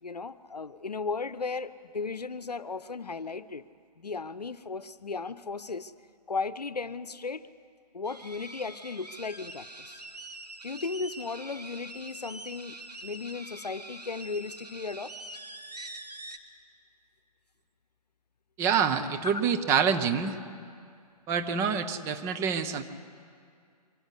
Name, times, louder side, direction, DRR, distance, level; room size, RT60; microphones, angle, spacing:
voice 1, 0.0-3.6 4.0-5.9 6.3-7.5 7.9-10.0 10.6-15.1 19.2-19.3, left 4 dB, 75° left, 16 dB, 0.8 m, -36 dB
sound 1, 8.0-16.4, right 2 dB, 80° right, 1.8 m, -44 dB
voice 2, 18.6-20.4 21.3-22.8, right 7 dB, 15° right, 7 dB, 0.7 m, -26 dB
23.5 x 13.0 x 9.7 m, 2.3 s
figure-of-eight pair, 130°, 21 cm